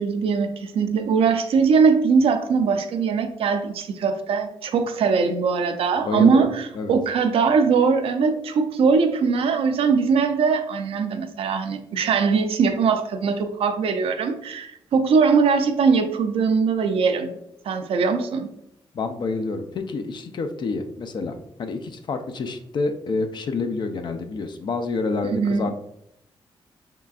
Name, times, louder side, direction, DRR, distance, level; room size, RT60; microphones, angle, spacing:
voice 1, 0.0-17.4 17.6-18.5 25.3-25.8, right 5 dB, 75° right, 7 dB, 0.5 m, -21 dB
voice 2, 6.0-6.5 6.7-7.0 18.9-25.8, left 3 dB, 50° left, 7 dB, 0.5 m, -28 dB
5.5 x 3.7 x 2.4 m, 0.78 s
cardioid pair, 125°, 10 cm